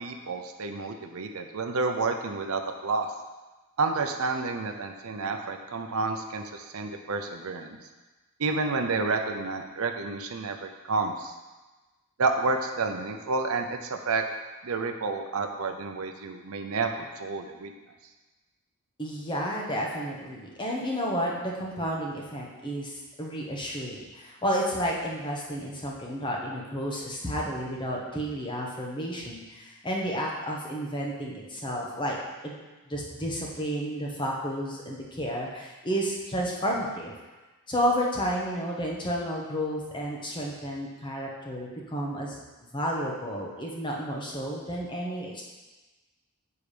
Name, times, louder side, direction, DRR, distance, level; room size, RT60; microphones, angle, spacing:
voice 1, 0.0-3.1 3.8-7.8 8.4-11.3 12.2-14.2 14.6-17.7, right 3 dB, 70° right, 4 dB, 0.6 m, -30 dB
voice 2, 19.0-32.2 32.4-32.6 32.9-37.1 37.7-42.4 42.7-45.4, equal, 20° left, -2 dB, 1.1 m, -31 dB
7.1 x 4.6 x 5.0 m, 1.2 s
head